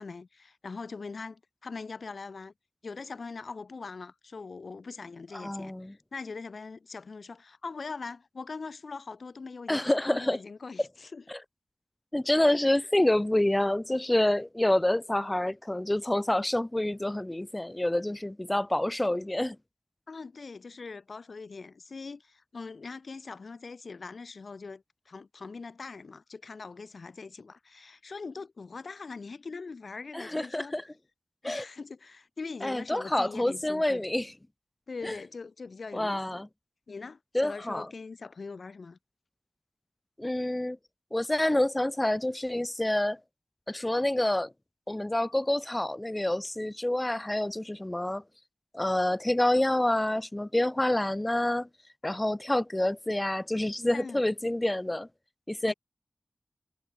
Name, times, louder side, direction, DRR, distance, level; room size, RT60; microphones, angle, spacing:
voice 1, 0.0-2.5 2.8-11.2 12.6-12.9 20.1-30.7 31.4-34.0 34.9-36.4 36.9-39.0 53.9-54.2 55.7-55.8, left 4 dB, 70° left, 7.7 m, -42 dB
voice 2, 5.3-5.9 9.7-10.4 11.3-11.4 12.1-19.6 30.1-30.8 31.4-31.6 32.6-34.3 35.0-35.1 35.9-36.5 37.3-37.9 40.2-40.8 41.1-43.2 43.7-44.5 44.9-48.2 48.7-51.7 52.0-55.1 55.5-55.7, left 1 dB, 15° left, 2.5 m, -27 dB
wide cardioid pair, 80°, 0 cm